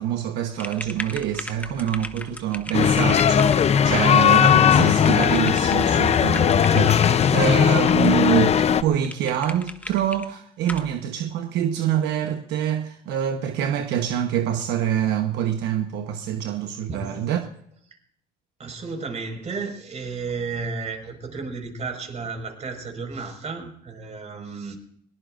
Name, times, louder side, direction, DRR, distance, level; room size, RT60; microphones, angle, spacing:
voice 1, 0.0-7.0 7.3-17.4, right 10 dB, 85° right, 1.1 m, -26 dB
sound 1, 0.5-7.3 7.8-8.4 8.7-8.8 9.0-10.3 10.6-10.9, left 2 dB, 10° left, 1.0 m, -38 dB
sound 2, 2.7-8.8, left 8 dB, 40° left, 0.7 m, -18 dB
voice 2, 16.9-17.2 18.6-24.8, right 4 dB, 40° right, 5.1 m, -33 dB
22.0 x 19.5 x 2.6 m
cardioid pair, 110°, 17 cm